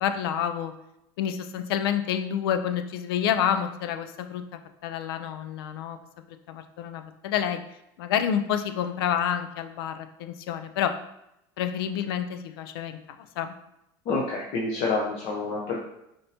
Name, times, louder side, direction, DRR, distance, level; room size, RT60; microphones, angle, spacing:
voice 1, 0.0-0.7 1.2-4.4 4.8-6.0 6.3-7.6 8.0-10.9 11.6-13.0 13.4-13.6, left 9 dB, 85° left, 9 dB, 0.4 m, -28 dB
voice 2, 14.1-15.8, left 3 dB, 55° left, -2 dB, 0.8 m, -28 dB
5.2 x 2.7 x 2.8 m, 0.83 s
supercardioid pair, 95°, 12 cm